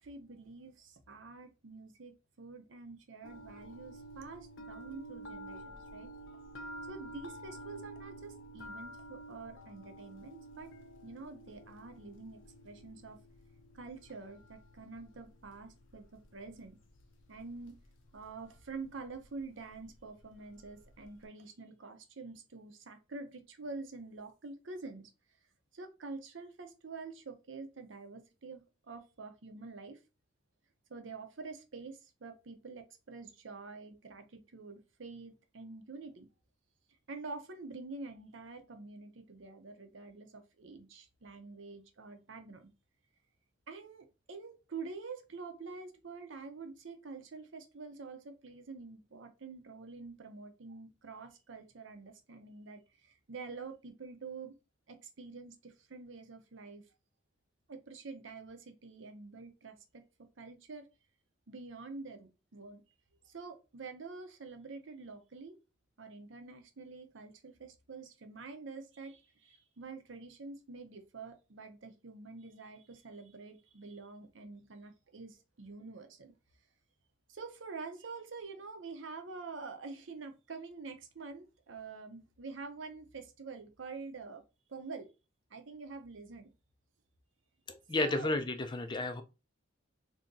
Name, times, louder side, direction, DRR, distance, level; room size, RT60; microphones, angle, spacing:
voice 1, 0.0-6.1 6.9-10.7 11.0-13.2 13.7-16.8 17.3-17.8 18.1-25.1 25.7-30.0 30.9-36.3 37.1-42.7 43.7-54.5 54.9-56.8 57.7-60.9 61.5-62.8 63.2-65.6 66.0-76.3 77.3-84.4 84.7-85.1 85.5-86.5 87.9-88.3, right 4 dB, 80° right, 0.7 m, -47 dB
sound 1, 3.2-21.2, right 1 dB, 85° left, 0.7 m, -51 dB
voice 2, 87.7-89.2, left 2 dB, 25° left, 0.4 m, -32 dB
2.8 x 2.7 x 3.7 m
head